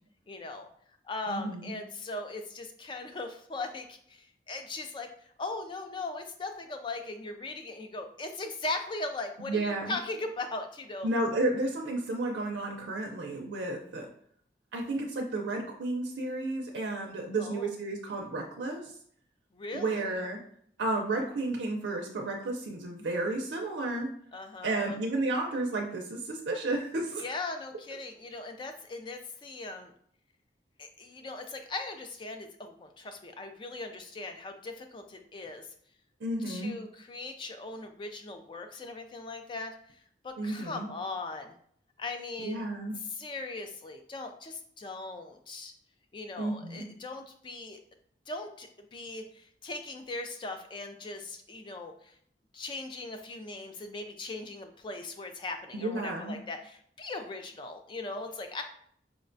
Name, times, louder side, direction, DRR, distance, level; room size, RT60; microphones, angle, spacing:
voice 1, 0.3-0.7 1.0-11.1 17.4-17.7 19.5-20.1 24.3-25.0 27.2-29.9 30.8-35.7 36.5-41.5 42.0-42.6 43.0-45.7 46.1-47.8 48.3-52.1 52.5-58.6, left 3 dB, 25° left, 6 dB, 0.3 m, -39 dB
voice 2, 1.3-1.7 9.4-10.0 11.0-14.1 14.7-18.9 19.7-20.4 20.8-24.1 24.6-27.2 36.2-36.7 40.4-40.9 42.4-43.0 46.4-46.8 55.7-56.3, right 2 dB, 90° right, 1 dB, 0.5 m, -32 dB
4.6 x 2.1 x 2.5 m, 0.62 s
head